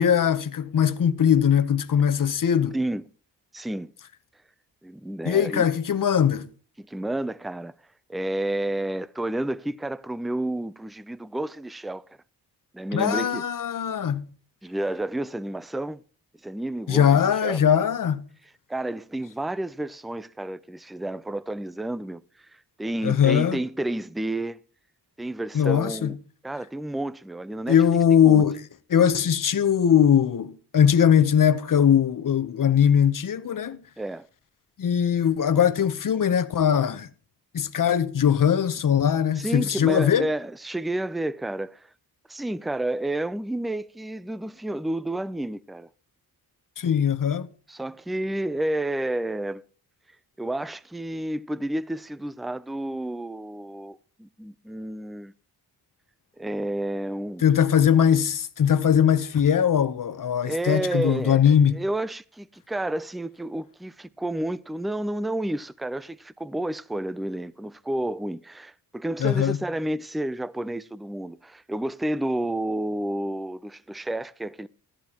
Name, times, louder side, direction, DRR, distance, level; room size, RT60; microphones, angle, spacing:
voice 1, 0.0-2.8 5.2-6.5 12.9-14.3 16.9-18.2 23.0-23.6 25.5-26.2 27.7-28.6 28.9-33.8 34.8-37.1 37.5-40.3 46.8-47.5 57.4-61.8 69.2-69.6, left 8 dB, 55° left, 0.9 m, -21 dB
voice 2, 2.7-3.1 3.5-3.9 4.8-5.7 6.8-7.7 8.1-12.2 12.7-13.4 14.6-16.0 16.4-17.6 18.7-22.2 22.5-24.6 25.2-26.2 26.4-27.8 28.1-28.4 34.0-34.3 39.4-41.9 42.3-45.9 47.7-49.6 50.4-55.3 56.4-57.4 60.4-74.7, right 1 dB, ahead, 0.4 m, -30 dB
14.0 x 11.5 x 2.9 m
wide cardioid pair, 100°, 40 cm